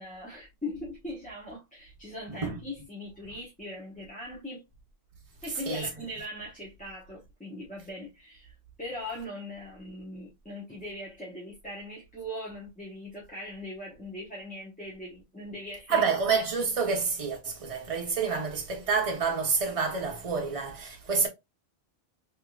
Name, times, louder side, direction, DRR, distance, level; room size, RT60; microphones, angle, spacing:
voice 1, 0.0-4.6 5.4-8.5 8.8-16.1, left 1 dB, 10° left, 1.0 m, -40 dB
voice 2, 15.9-21.3, right 5 dB, 35° right, 0.9 m, -28 dB
3.5 x 3.0 x 2.4 m
omnidirectional pair, 1.1 m